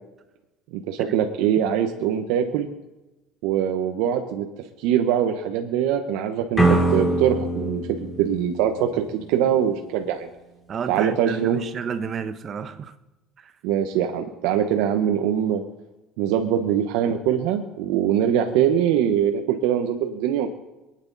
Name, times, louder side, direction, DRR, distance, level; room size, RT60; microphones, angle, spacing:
voice 1, 0.7-2.7 3.4-4.5 4.8-10.3 10.9-11.6 13.6-15.6 16.2-20.5, right 9 dB, 85° right, 1.1 m, -23 dB
sound 1, 6.6-9.5, right 2 dB, 10° left, 2.8 m, -23 dB
voice 2, 10.7-12.9 13.4-13.5, right 6 dB, 35° right, 1.1 m, -31 dB
22.5 x 9.7 x 4.1 m
cardioid pair, 125°, 0 cm